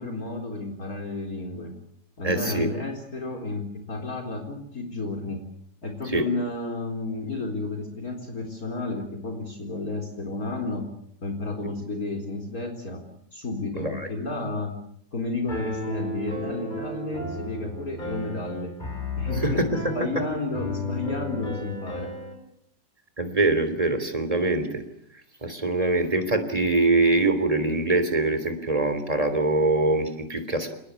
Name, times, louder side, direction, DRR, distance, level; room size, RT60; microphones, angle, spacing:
voice 1, 0.0-1.7 2.2-5.4 5.8-10.8 11.2-13.0 13.3-14.7 15.1-18.7 19.2-22.1, left 2 dB, 50° left, 2 dB, 4.4 m, -31 dB
voice 2, 2.2-2.7 6.1-6.2 13.8-14.1 19.4-19.8 23.2-24.8 25.4-30.8, right 2 dB, 20° right, 9 dB, 3.5 m, -23 dB
Piano, 15.5-22.3, left 2 dB, 25° left, 5.9 m, -34 dB
28.5 x 20.0 x 8.4 m, 0.69 s
omnidirectional pair, 1.9 m